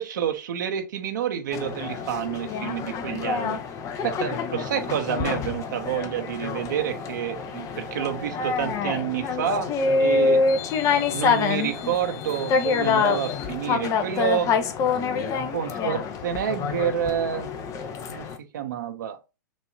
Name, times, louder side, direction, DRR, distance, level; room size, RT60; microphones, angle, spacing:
voice 1, 0.0-3.6 4.0-9.7 10.0-10.5 11.1-14.5 15.5-17.5 18.1-18.3 18.5-19.2, right 9 dB, 65° right, 1.0 m, -28 dB
sound 1, 1.5-18.4, left 5 dB, 30° left, 0.8 m, -26 dB
6.3 x 2.7 x 2.6 m
hypercardioid pair, 110°, 11 cm